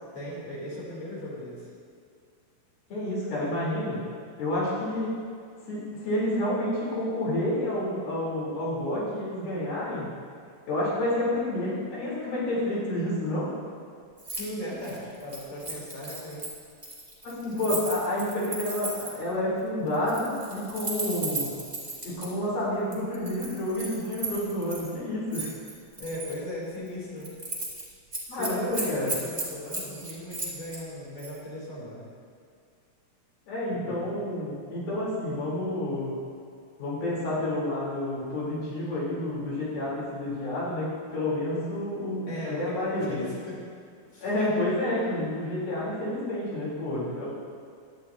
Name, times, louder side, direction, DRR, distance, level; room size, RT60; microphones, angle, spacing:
voice 1, 0.1-1.7 14.3-16.5 26.0-27.3 28.3-32.1 33.7-34.1 42.3-43.6 44.1-44.3, left 1 dB, 50° left, -6 dB, 4.5 m, -37 dB
voice 2, 2.9-4.0 4.4-5.1 5.7-10.1 10.7-13.5 17.2-21.5 22.0-25.5 28.3-29.1 33.5-36.1 36.8-43.2 44.2-47.3, left 1 dB, 85° left, -7 dB, 5.5 m, -29 dB
Keys jangling, 14.2-14.5 14.7-19.3 19.9-22.3 22.9-24.9 25.3-26.4 26.7-26.9 27.2-27.8 28.1-30.8 31.2-31.4, right 2 dB, 10° right, 2.9 m, -35 dB
17.5 x 12.0 x 2.8 m, 2.3 s
omnidirectional pair, 4.0 m